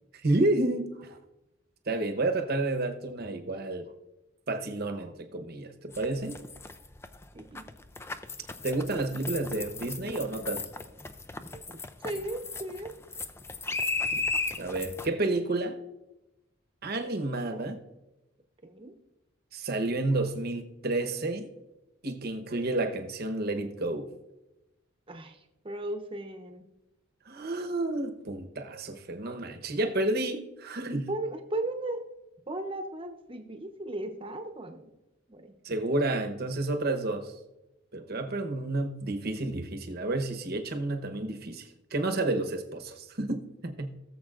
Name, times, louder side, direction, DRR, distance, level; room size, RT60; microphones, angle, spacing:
voice 1, 0.2-1.2 1.9-3.9 4.5-6.4 8.6-10.6 14.6-15.7 16.8-17.8 19.5-21.5 22.0-24.1 27.3-31.1 35.6-37.3 37.9-43.9, right 2 dB, 50° right, 1.0 m, -30 dB
sound 1, 5.9-15.1, left 3 dB, 15° left, 0.4 m, -36 dB
voice 2, 7.3-7.6 11.7-11.8 12.0-12.9 18.6-18.9 25.1-26.6 31.1-32.0 32.5-34.9 35.3-35.5, right 1 dB, 25° right, 0.9 m, -36 dB
18.5 x 7.2 x 2.5 m
head